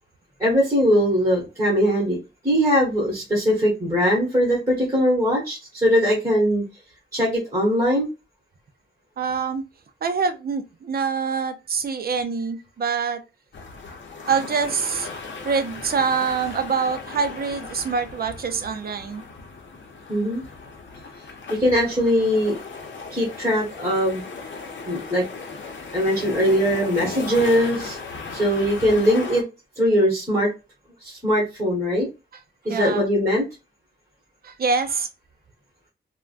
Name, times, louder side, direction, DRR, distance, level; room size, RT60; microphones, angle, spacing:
voice 1, 0.4-2.2 2.4-6.6 7.1-8.1 20.1-20.4 21.5-22.6 23.1-24.2 24.9-25.2 25.9-28.0 28.3-29.4 29.8-30.5 31.0-32.1 32.6-33.5, equal, 15° right, 1.3 m, -21 dB
voice 2, 9.2-9.6 10.0-13.2 14.2-15.1 15.4-19.2 32.7-33.0 34.4-35.1, right 5 dB, 50° right, 0.5 m, -25 dB
sound 1, 13.5-29.4, left 4 dB, 75° left, 0.7 m, -37 dB
3.4 x 2.1 x 2.4 m
wide cardioid pair, 165°, 19 cm